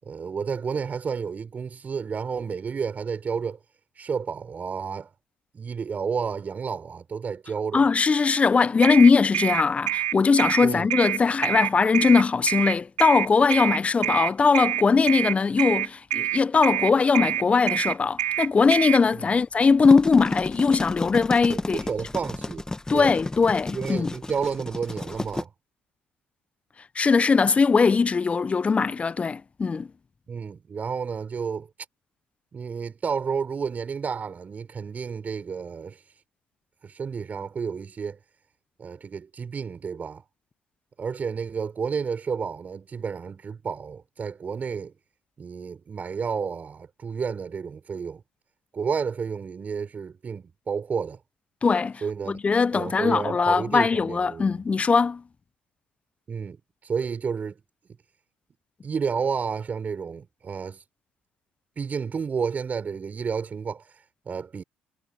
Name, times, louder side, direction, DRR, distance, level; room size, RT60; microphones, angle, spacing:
voice 1, 0.0-3.6 4.0-5.1 5.5-7.9 10.6-10.9 19.1-19.3 21.5-22.6 22.9-23.2 23.7-25.5 30.3-31.7 32.5-36.0 36.8-38.2 38.8-40.2 41.0-44.9 45.4-48.2 48.7-51.2 52.0-52.4 52.7-54.6 56.3-57.5 58.8-60.8 61.8-63.9 64.3-64.6, right 6 dB, 40° right, 7.2 m, -31 dB
voice 2, 7.7-21.8 22.9-24.1 26.9-29.9 51.6-52.0 52.3-55.2, left 5 dB, 30° left, 1.0 m, -20 dB
sound 1, 8.8-19.0, right 12 dB, 85° right, 4.1 m, -26 dB
sound 2, 19.6-25.4, left 2 dB, 15° left, 1.6 m, -32 dB
hypercardioid pair, 50°, 4 cm